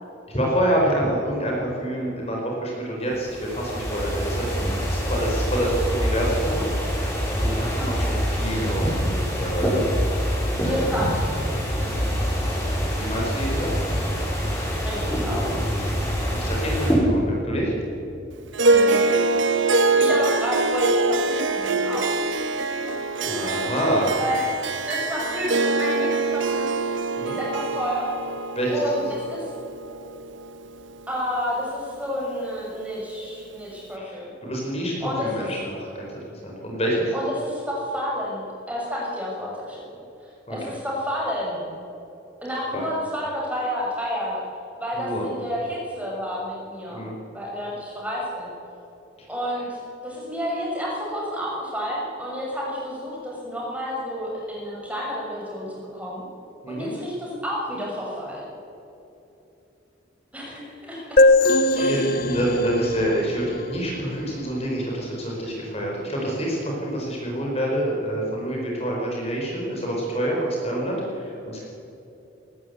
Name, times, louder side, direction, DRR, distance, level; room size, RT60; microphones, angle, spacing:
voice 1, 0.3-6.7 7.0-7.1 7.4-9.8 10.6-10.9 12.9-13.7 16.5-17.7 23.2-24.2 27.2-27.4 28.5-28.9 34.0-34.2 34.4-36.1 36.4-37.1 40.5-40.6 42.7-42.8 44.9-45.2 46.9-47.1 49.2-49.3 56.6-56.9 61.9-71.6, right 1 dB, 30° left, -2 dB, 5.1 m, -27 dB
sound 1, 3.1-16.9, equal, 15° left, 7.2 m, -25 dB
voice 2, 7.6-7.9 10.6-11.2 14.8-15.5 18.7-19.1 20.0-22.1 22.9-23.0 23.3-23.4 24.2-24.4 24.8-26.8 27.2-28.1 28.7-29.5 31.1-34.3 35.0-35.5 37.1-39.8 40.5-41.7 42.4-44.4 44.8-47.0 47.3-48.5 49.3-56.2 56.7-58.4 60.3-61.2 61.7-62.4, equal, 5° right, -4 dB, 6.7 m, -30 dB
Harp, 18.5-31.1, right 3 dB, 75° right, 1.3 m, -24 dB
sound 2, 61.2-64.7, left 2 dB, 50° left, 0.9 m, -21 dB
20.0 x 19.0 x 8.3 m, 3.0 s
head